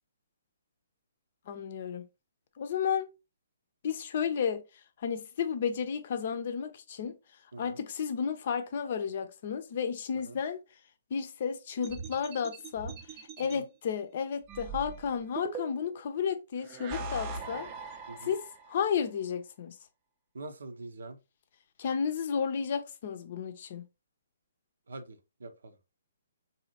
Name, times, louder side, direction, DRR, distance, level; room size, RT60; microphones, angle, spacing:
voice 1, 1.5-2.0 2.6-3.1 3.8-4.6 5.0-7.2 7.6-10.6 11.1-17.7 18.2-19.8 21.8-23.8, left 7 dB, 45° left, 0.6 m, -32 dB
sound 1, 11.8-13.6 14.5-16.0 16.6-18.8, right 4 dB, 30° right, 0.5 m, -41 dB
voice 2, 20.3-21.2 24.9-25.8, right 2 dB, 65° right, 0.6 m, -44 dB
4.0 x 2.7 x 2.8 m
figure-of-eight pair, 125°, 0 cm